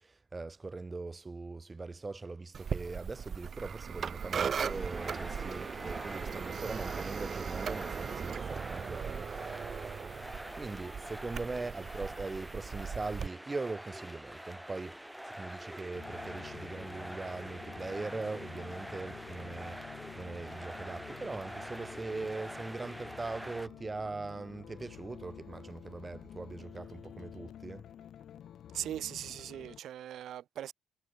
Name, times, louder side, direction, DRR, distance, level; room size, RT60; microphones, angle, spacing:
voice 1, 0.0-9.3 10.6-27.9, right 3 dB, 20° right, 5.8 m, -41 dB
sound 1, 2.5-13.3, right 7 dB, 45° right, 0.9 m, -38 dB
sound 2, 4.2-23.7, equal, 5° right, 2.8 m, -45 dB
sound 3, 16.0-29.8, left 10 dB, 60° left, 2.2 m, -50 dB
voice 2, 28.7-30.7, right 11 dB, 65° right, 3.8 m, -39 dB
cardioid pair, 95°, 0 cm